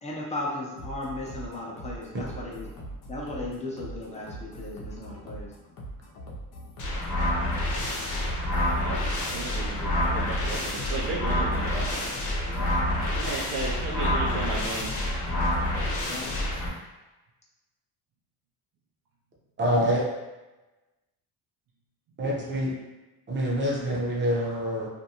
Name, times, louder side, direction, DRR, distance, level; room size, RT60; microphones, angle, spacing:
voice 1, 0.0-5.5 12.5-12.7 16.0-16.3, left 2 dB, 20° left, -4 dB, 0.6 m, -36 dB
sound 1, 0.8-16.8, right 1 dB, 75° left, 0.7 m, -41 dB
sound 2, 6.8-16.7, left 1 dB, 50° left, 1.0 m, -28 dB
voice 2, 8.8-12.1 13.1-14.9, right 3 dB, 65° right, -6 dB, 0.6 m, -35 dB
voice 3, 19.6-20.0 22.2-22.7 23.3-24.9, equal, 30° right, -4 dB, 0.8 m, -26 dB
2.5 x 2.2 x 2.8 m, 1.1 s
cardioid pair, 115°, 37 cm